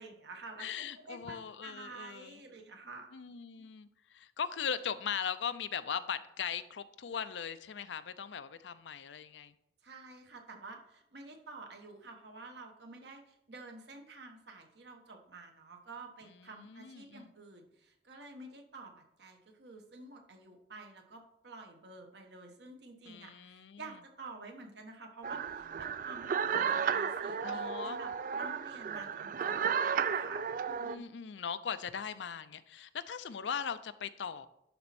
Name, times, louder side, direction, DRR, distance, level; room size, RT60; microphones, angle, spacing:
voice 1, 0.0-3.1 9.8-31.0, right 3 dB, 70° right, 3 dB, 1.3 m, -50 dB
voice 2, 0.6-2.4 3.1-9.5 16.3-17.3 23.1-23.8 27.4-28.0 30.8-34.5, left 7 dB, 85° left, 13 dB, 0.5 m, -39 dB
sound 1, 25.2-31.0, right 7 dB, 45° right, 0.3 m, -33 dB
11.5 x 4.2 x 4.2 m, 0.80 s
head